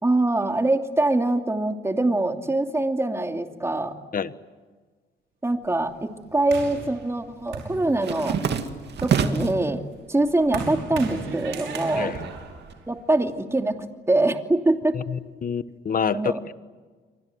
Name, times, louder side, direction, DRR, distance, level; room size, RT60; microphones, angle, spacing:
voice 1, 0.0-4.0 5.4-8.4 9.0-9.8 10.1-12.1 12.9-15.0 16.1-16.4, right 2 dB, 15° right, 2.8 m, -24 dB
sound 1, 5.7-6.5 6.8-9.7 10.1-10.8 11.1-12.7, right 6 dB, 60° right, 2.6 m, -28 dB
sound 2, 6.5-8.3 8.8-13.4, right 5 dB, 75° right, 5.9 m, -36 dB
voice 2, 15.1-16.5, left 7 dB, 45° left, 1.4 m, -27 dB
30.0 x 24.5 x 8.0 m
cardioid pair, 90°, 20 cm